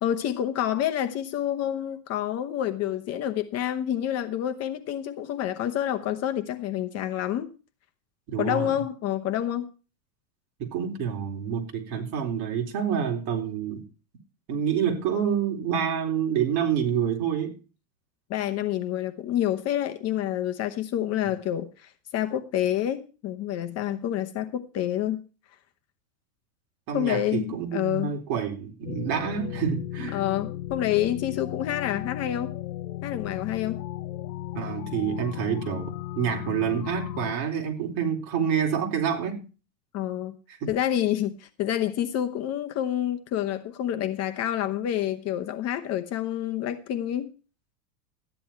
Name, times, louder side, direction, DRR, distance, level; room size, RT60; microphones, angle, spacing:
voice 1, 0.0-7.5 8.4-9.7 18.3-25.2 26.9-28.2 30.1-32.5 33.0-33.8 39.9-40.4 40.7-47.3, left 11 dB, 30° left, 1.0 m, -28 dB
voice 2, 8.3-8.7 10.6-13.8 14.5-17.5 26.9-30.2 34.5-39.4 40.6-40.7, right 8 dB, 45° right, 3.9 m, -28 dB
sound 1, 28.8-37.4, left 13 dB, 75° left, 0.9 m, -35 dB
14.0 x 10.5 x 4.5 m
supercardioid pair, 140°, 49 cm